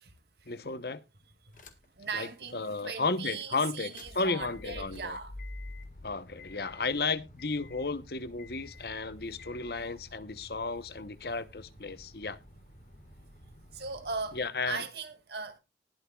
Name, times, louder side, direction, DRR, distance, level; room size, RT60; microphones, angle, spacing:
voice 1, 0.5-1.0 2.1-5.2 6.0-12.4 14.3-14.8, left 3 dB, 60° left, 1.0 m, -33 dB
sound 1, 1.5-2.0 2.5-2.6 3.7-14.4, left 1 dB, 45° left, 1.8 m, -49 dB
voice 2, 2.0-5.3 13.7-14.4 14.7-15.6, right 4 dB, 70° right, 2.3 m, -38 dB
20.0 x 6.9 x 2.4 m
head